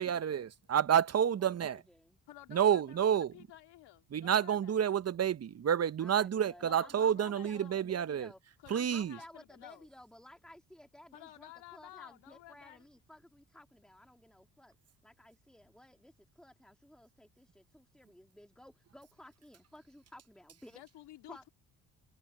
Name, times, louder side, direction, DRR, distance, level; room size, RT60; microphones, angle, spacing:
voice 1, 0.0-1.8 2.5-3.3 4.1-8.3 8.7-9.2, right 9 dB, 35° right, 0.8 m, -29 dB
voice 2, 1.1-2.2 6.0-8.4 8.7-14.8 15.0-20.8 21.3-21.5, left 1 dB, ahead, 2.2 m, -56 dB
voice 3, 2.3-4.8 6.6-7.9 8.6-9.9 11.1-12.8 20.7-21.5, left 14 dB, 75° left, 2.1 m, -53 dB
supercardioid pair, 65°, 41 cm